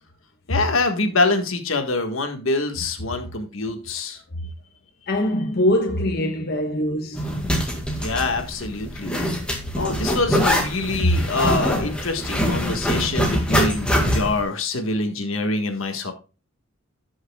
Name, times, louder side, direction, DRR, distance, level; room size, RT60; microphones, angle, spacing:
voice 1, 0.5-4.2 8.0-9.2 9.8-16.1, left 3 dB, 75° left, 1.6 m, -25 dB
voice 2, 5.1-7.3 11.0-11.1, left 1 dB, 50° left, 1.3 m, -22 dB
Zipper (clothing), 7.1-14.4, equal, 5° left, 1.9 m, -23 dB
16.5 x 6.4 x 2.3 m
head